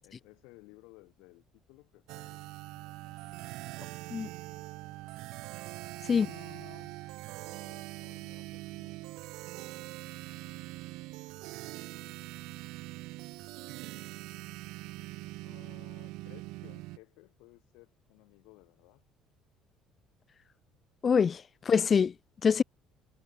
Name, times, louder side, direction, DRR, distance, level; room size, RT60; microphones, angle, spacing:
voice 1, 0.0-3.6 6.1-7.0 7.5-9.6 10.0-10.7 15.0-19.1, left 26 dB, 90° left, 3.7 m, -58 dB
sound 1, 2.1-17.0, right 20 dB, 75° right, 0.6 m, -43 dB
voice 2, 21.0-22.1 22.4-22.6, left 6 dB, 30° left, 0.5 m, -25 dB
cardioid pair, 145°, 0 cm